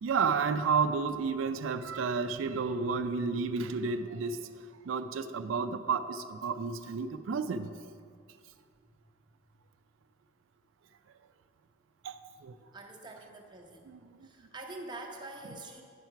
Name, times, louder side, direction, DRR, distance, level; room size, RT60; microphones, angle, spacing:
voice 1, 0.0-4.4 4.8-7.7 12.0-12.5 13.9-14.0, right 5 dB, 75° right, 10 dB, 0.4 m, -31 dB
voice 2, 12.7-13.9 14.2-15.8, right 2 dB, 20° right, 0 dB, 0.8 m, -45 dB
10.0 x 4.5 x 5.7 m, 2.2 s
head